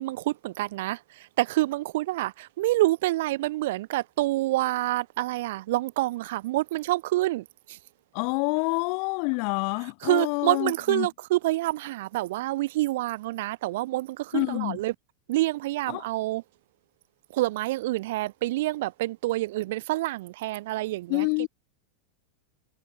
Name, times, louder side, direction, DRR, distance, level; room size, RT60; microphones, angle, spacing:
voice 1, 0.0-7.8 10.0-14.9 15.3-16.4 17.3-21.5, right 17 dB, 55° right, 1.5 m, -27 dB
voice 2, 8.1-11.1 14.3-14.8 15.9-16.1 21.1-21.5, left 40 dB or more, 45° left, 2.6 m, -27 dB
figure-of-eight pair, 90°, 0 cm